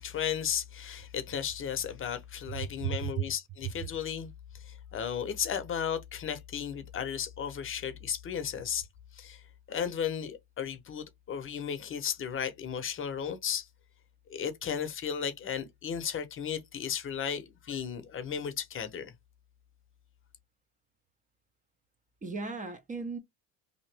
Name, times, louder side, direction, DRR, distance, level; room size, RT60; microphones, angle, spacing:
voice 1, 0.0-8.9 9.1-9.4 9.7-13.7 14.3-19.1, left 8 dB, 35° left, 0.8 m, -35 dB
voice 2, 2.6-3.3 22.2-23.2, right 7 dB, 20° right, 0.7 m, -35 dB
2.9 x 2.6 x 3.3 m
supercardioid pair, 95°, 36 cm